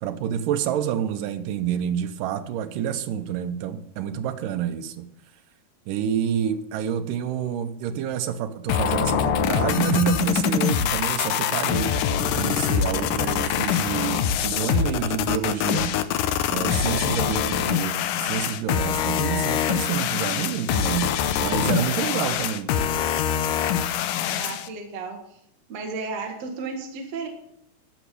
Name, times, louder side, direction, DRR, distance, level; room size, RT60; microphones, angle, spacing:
voice 1, 0.0-5.1 5.9-11.9 12.2-16.0 16.5-22.7, right 9 dB, 85° right, 2.5 m, -28 dB
sound 1, 8.7-24.7, left 9 dB, 85° left, 2.3 m, -24 dB
voice 2, 24.3-25.4 25.7-27.3, right 4 dB, 55° right, 2.5 m, -33 dB
13.5 x 6.1 x 8.4 m
omnidirectional pair, 3.7 m